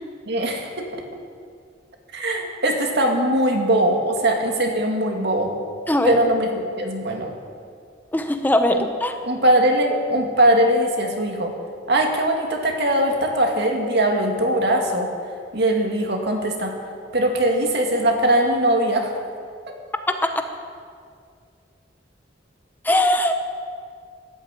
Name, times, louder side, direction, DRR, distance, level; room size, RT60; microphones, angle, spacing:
voice 1, 0.3-0.9 2.1-5.5 6.0-7.3 8.7-8.9 9.2-11.5 11.9-15.1 15.5-16.7 17.1-19.1 19.7-19.8, right 1 dB, 60° right, 2 dB, 2.1 m, -21 dB
voice 2, 5.9-6.2 8.1-9.1 20.1-20.3 22.8-23.5, left 1 dB, 10° left, 6 dB, 0.7 m, -20 dB
13.5 x 11.0 x 8.2 m, 2.2 s
head